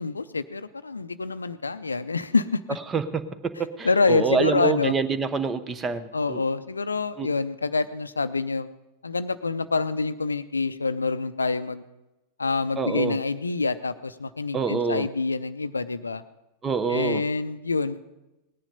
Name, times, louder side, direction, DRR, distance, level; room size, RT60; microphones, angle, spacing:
voice 1, 0.0-2.6 3.8-4.9 6.1-8.7 9.0-11.8 12.4-16.2 16.9-18.0, left 4 dB, 75° left, 14 dB, 0.5 m, -26 dB
voice 2, 2.9-3.2 3.8-6.4 7.2-7.3 12.8-13.2 14.5-15.1 16.6-17.2, right 5 dB, 20° right, 12 dB, 0.8 m, -26 dB
18.5 x 10.0 x 5.3 m, 1.0 s
figure-of-eight pair, 90°, 0 cm